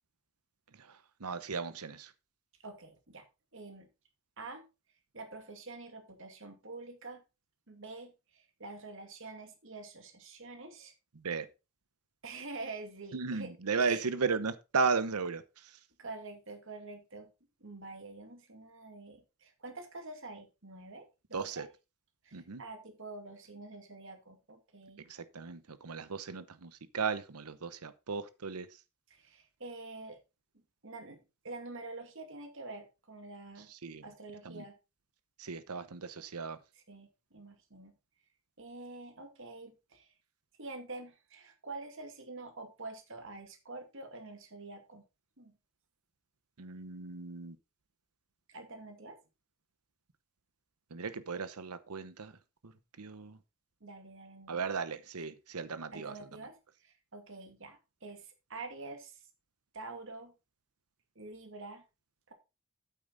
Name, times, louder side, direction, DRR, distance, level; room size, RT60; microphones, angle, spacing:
voice 1, 0.7-2.1 11.2-11.5 13.1-15.8 21.3-21.7 22.3-22.6 25.0-28.8 33.7-34.0 34.4-34.7 35.4-36.6 46.6-47.6 50.9-52.4 52.6-52.7 53.0-53.4 54.5-56.2, right 5 dB, 90° right, 0.9 m, -36 dB
voice 2, 2.6-3.2 3.5-3.9 4.4-4.6 5.1-7.2 7.7-10.9 12.2-13.5 13.8-14.0 16.0-17.3 17.6-21.7 22.2-25.0 29.1-30.2 30.8-33.7 34.0-34.7 36.9-37.9 38.6-40.1 40.6-45.0 45.4-45.5 48.5-49.2 53.8-54.6 55.9-56.5 56.8-59.2 59.7-60.3 61.2-61.8 62.3-62.4, right 3 dB, 60° right, 2.3 m, -47 dB
9.0 x 8.6 x 4.0 m
head